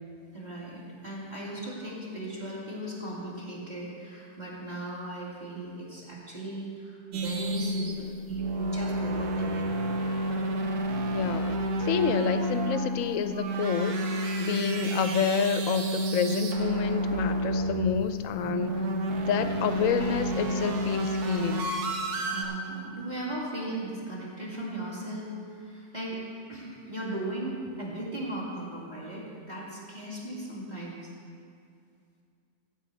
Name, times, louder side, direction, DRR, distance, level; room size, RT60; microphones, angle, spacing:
voice 1, 0.3-9.7 14.5-14.8 18.8-19.4 22.2-26.2 26.5-31.1, right 1 dB, 25° right, -5 dB, 2.6 m, -37 dB
sound 1, 7.1-22.4, right 1 dB, 75° right, 1.4 m, -30 dB
voice 2, 11.1-11.6 11.8-13.9 14.4-18.7 19.1-21.7, left 7 dB, 65° left, 10 dB, 0.9 m, -29 dB
14.0 x 5.0 x 8.1 m, 2.3 s
omnidirectional pair, 1.7 m